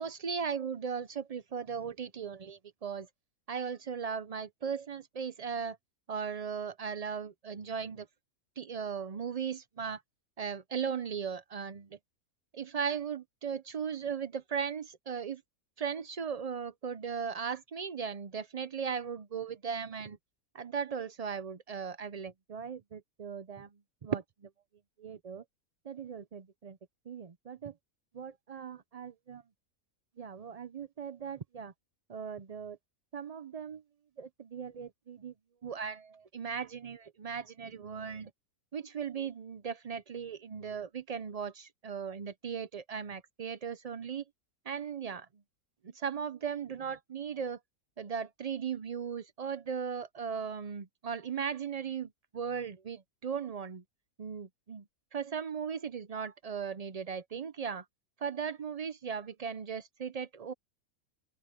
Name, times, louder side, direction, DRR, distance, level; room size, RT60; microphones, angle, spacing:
voice 1, 0.0-3.1 3.5-5.8 6.1-8.1 8.6-10.0 10.4-12.0 12.5-15.4 15.8-20.2 20.5-23.7 24.0-24.5 25.0-25.4 25.8-26.8 27.1-27.7 28.1-29.4 30.2-31.7 32.1-32.8 33.1-33.8 34.2-35.3 35.6-38.3 38.7-44.2 44.7-45.3 45.8-47.6 48.0-53.8 54.2-54.8 55.1-57.8 58.2-60.5, right 6 dB, 75° right, 0.3 m, -37 dB
open air
omnidirectional pair, 1.5 m